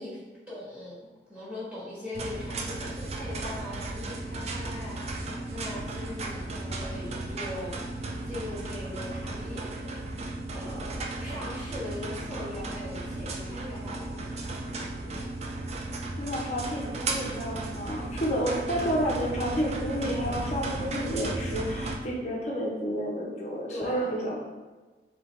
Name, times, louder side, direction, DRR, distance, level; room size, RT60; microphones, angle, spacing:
voice 1, 0.0-10.1 10.5-15.3 23.7-24.2, left 1 dB, 5° right, -11 dB, 1.4 m, -41 dB
sound 1, 2.1-21.9, right 2 dB, 35° right, 0.4 m, -35 dB
voice 2, 16.2-24.4, equal, 40° left, -2 dB, 0.8 m, -30 dB
4.5 x 3.0 x 3.2 m, 1.3 s
head